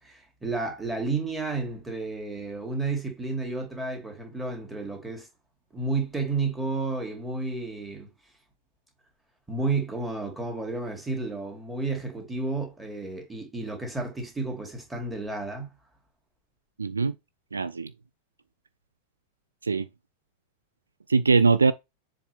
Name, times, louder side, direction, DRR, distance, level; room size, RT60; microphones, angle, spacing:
voice 1, 0.0-5.3 5.7-8.1 9.5-15.7, right 3 dB, 10° right, 2.4 m, -31 dB
voice 2, 16.8-17.1 17.5-17.9 19.6-19.9 21.1-21.7, right 4 dB, 75° right, 0.4 m, -21 dB
7.1 x 3.9 x 3.4 m
figure-of-eight pair, 90°, 0 cm